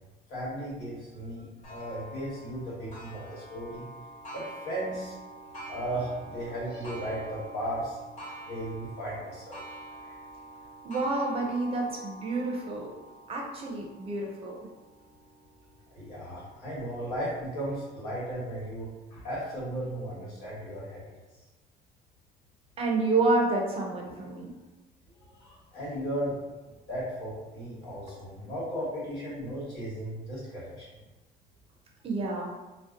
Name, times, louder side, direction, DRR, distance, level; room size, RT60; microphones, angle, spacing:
voice 1, 0.3-3.9 4.3-5.1 5.7-8.0 8.4-9.6 10.0-10.2 15.9-21.0 25.2-26.4 26.9-30.9, right 1 dB, 80° left, -7 dB, 1.3 m, -36 dB
Clock, 1.6-16.9 17.5-17.6 18.2-18.3 19.2-19.3, right 1 dB, 45° left, 0.8 m, -46 dB
voice 2, 10.8-12.9 13.3-14.6 22.8-24.5 32.0-32.5, right 3 dB, 35° right, -1 dB, 0.4 m, -29 dB
2.6 x 2.0 x 2.4 m, 1.1 s
cardioid pair, 155°, 17 cm